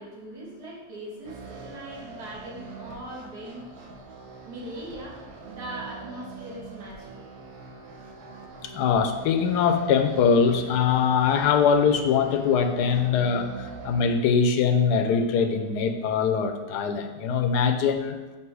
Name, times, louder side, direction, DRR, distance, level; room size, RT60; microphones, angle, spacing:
voice 1, 0.0-3.6 4.4-5.2 5.4-7.3, right 1 dB, 75° right, -4 dB, 2.0 m, -40 dB
sound 1, 1.2-14.0, right 4 dB, 60° right, 1.1 m, -43 dB
voice 2, 8.6-18.2, left 6 dB, 90° left, 7 dB, 1.2 m, -22 dB
6.8 x 2.9 x 4.6 m, 1.2 s
omnidirectional pair, 1.7 m